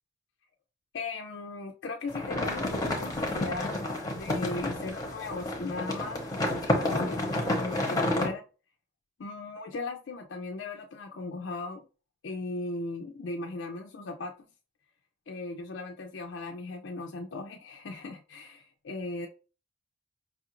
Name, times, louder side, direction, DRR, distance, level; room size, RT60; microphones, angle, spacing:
voice 1, 0.9-6.2 6.6-7.3 7.6-8.4 9.2-11.8 12.2-14.3 15.3-19.3, left 3 dB, 60° left, 2 dB, 0.4 m, -37 dB
sound 1, 2.1-8.3, left 1 dB, 15° left, 0.7 m, -30 dB
5.2 x 2.4 x 2.9 m, 0.34 s
head